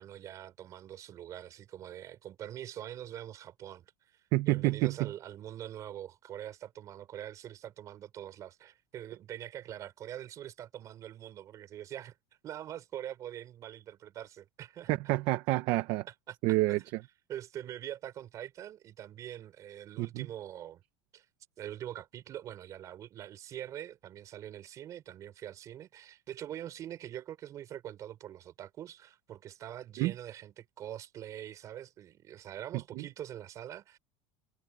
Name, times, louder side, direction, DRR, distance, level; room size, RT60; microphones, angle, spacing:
voice 1, 0.0-4.2 4.5-12.1 12.4-14.9 16.1-16.8 17.3-20.8 21.1-21.2 21.6-34.0, right 11 dB, 30° right, 5.0 m, -44 dB
voice 2, 4.3-5.1 14.9-16.1 16.4-17.0 20.0-20.3 30.0-30.1 33.0-33.1, right 19 dB, 45° right, 0.8 m, -28 dB
cardioid pair, 170°, 11 cm